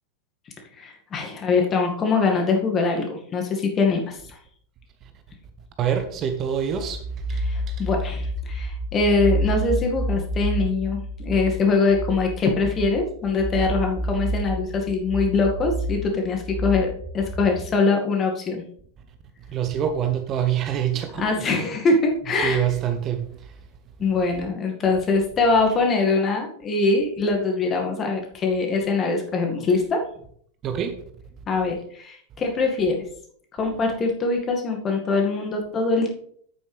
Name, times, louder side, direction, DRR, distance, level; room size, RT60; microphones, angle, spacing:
voice 1, 0.8-4.4 7.4-18.6 21.1-22.6 24.0-30.0 31.5-33.0 33.5-36.1, left 4 dB, 25° left, 2.1 m, -23 dB
voice 2, 5.8-7.0 7.3-7.8 19.5-21.4 22.4-23.6 30.6-30.9, right 9 dB, 30° right, 0.9 m, -26 dB
sound 1, 6.8-17.7, right 1 dB, 15° right, 1.5 m, -29 dB
9.1 x 8.6 x 3.5 m
figure-of-eight pair, 90°, 0 cm